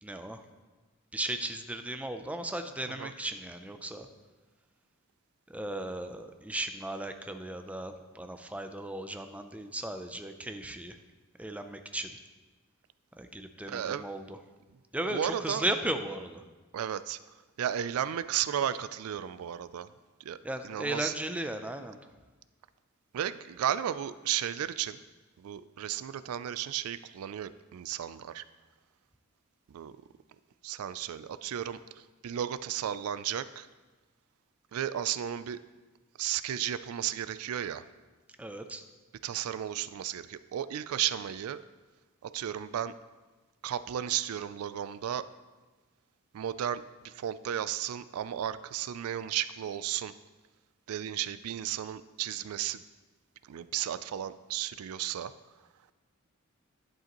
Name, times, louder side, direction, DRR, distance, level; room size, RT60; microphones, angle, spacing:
voice 1, 0.0-0.4 1.1-4.1 5.5-11.0 11.4-12.2 13.2-14.4 14.9-16.4 20.4-22.0 38.4-38.8, right 1 dB, 5° right, 8 dB, 0.4 m, -36 dB
voice 2, 13.7-14.0 15.1-15.6 16.7-17.2 17.6-19.9 20.2-20.4 20.6-21.1 23.1-25.0 25.4-28.4 29.7-30.0 30.6-33.7 34.7-35.6 36.2-37.8 39.2-41.6 42.2-42.9 43.6-45.3 46.3-50.1 50.9-52.8 53.4-55.3, right 10 dB, 90° right, 15 dB, 0.3 m, -34 dB
11.0 x 7.5 x 3.0 m, 1.3 s
head